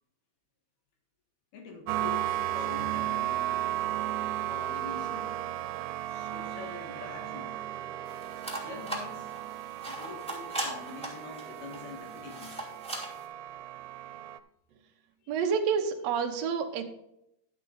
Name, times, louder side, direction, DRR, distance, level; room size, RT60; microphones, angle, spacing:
voice 1, 1.5-3.7 4.5-5.3 6.1-7.6 8.6-9.3 9.9-12.6 15.2-15.4, left 4 dB, 75° left, 2 dB, 3.7 m, -44 dB
sound 1, 1.9-14.4, right 13 dB, 90° right, 2.6 m, -35 dB
sound 2, 8.1-13.2, right 1 dB, ahead, 2.3 m, -40 dB
voice 2, 15.3-16.8, right 6 dB, 70° right, 3 dB, 1.6 m, -28 dB
11.5 x 7.4 x 4.0 m, 0.80 s
omnidirectional pair, 4.4 m